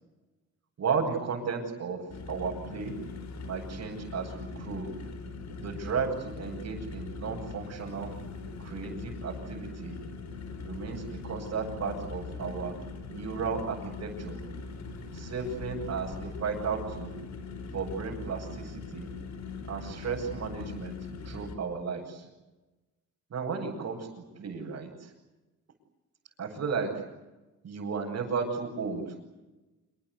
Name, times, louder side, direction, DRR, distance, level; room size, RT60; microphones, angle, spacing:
voice 1, 0.8-2.0 2.3-3.0 3.4-4.9 5.6-8.1 8.6-10.0 10.6-12.7 13.1-14.4 15.1-17.1 17.7-19.1 19.7-20.9 21.2-22.3 23.3-24.1 24.4-25.1 26.4-27.0 27.6-29.0, right 5 dB, 55° right, -4 dB, 7.6 m, -34 dB
sound 1, 2.1-21.6, left 4 dB, 65° left, 4.7 m, -41 dB
27.0 x 25.5 x 8.3 m, 1.1 s
cardioid pair, 90°, 30 cm